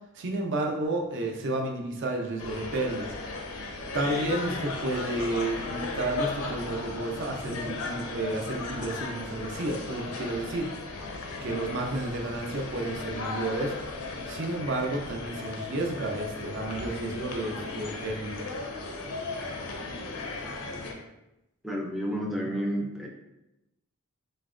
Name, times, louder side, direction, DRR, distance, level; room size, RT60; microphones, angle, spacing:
voice 1, 0.1-3.1 3.9-10.7 11.4-13.8 14.3-18.5, right 2 dB, 55° right, 1 dB, 0.5 m, -31 dB
sound 1, 2.4-20.9, left 3 dB, 80° left, 0.5 m, -36 dB
voice 2, 21.6-23.1, equal, ahead, -1 dB, 0.3 m, -30 dB
3.9 x 2.1 x 2.4 m, 0.93 s
head